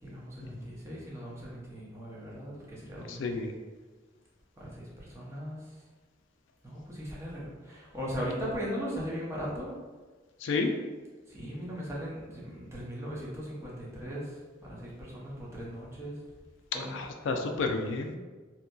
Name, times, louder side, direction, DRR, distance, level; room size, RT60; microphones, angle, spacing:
voice 1, 0.0-3.2 4.6-5.6 6.6-9.8 11.3-14.3 14.6-16.1 16.7-16.9, equal, 15° right, -6 dB, 0.6 m, -38 dB
voice 2, 3.1-3.6 10.4-10.7 16.9-18.2, left 3 dB, 70° left, 4 dB, 0.3 m, -31 dB
2.7 x 2.6 x 2.2 m, 1.3 s
head